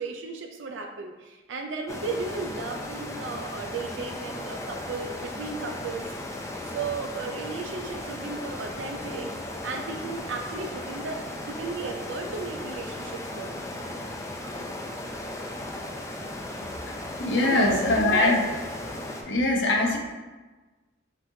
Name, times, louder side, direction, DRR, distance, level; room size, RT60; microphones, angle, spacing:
voice 1, 0.0-6.1 6.7-11.2 11.5-13.5 17.4-18.0, right 4 dB, 85° right, 3 dB, 0.4 m, -35 dB
sound 1, 1.9-19.2, left 1 dB, 15° left, 0.4 m, -36 dB
voice 2, 17.2-18.5 19.3-20.0, left 2 dB, 85° left, 0 dB, 0.8 m, -22 dB
5.8 x 3.1 x 2.6 m, 1.2 s
head